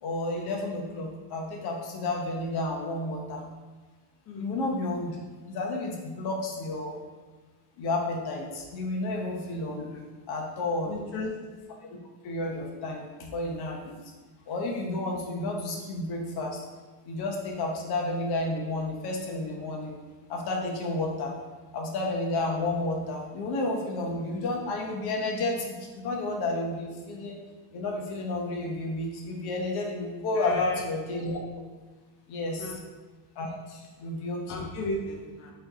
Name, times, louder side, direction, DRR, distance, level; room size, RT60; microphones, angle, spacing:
voice 1, 0.0-3.4 4.4-5.2 5.5-7.0 7.8-10.9 12.2-14.0 14.5-16.6 17.0-19.9 20.3-21.3 21.7-27.4 27.7-31.4 32.3-32.8 33.4-34.7, left 2 dB, 50° left, 0 dB, 0.9 m, -31 dB
voice 2, 10.9-11.3 30.4-30.8 32.6-32.8 34.5-35.5, left 2 dB, 30° left, -1 dB, 0.4 m, -35 dB
3.7 x 3.2 x 4.1 m, 1.3 s
cardioid pair, 145°, 48 cm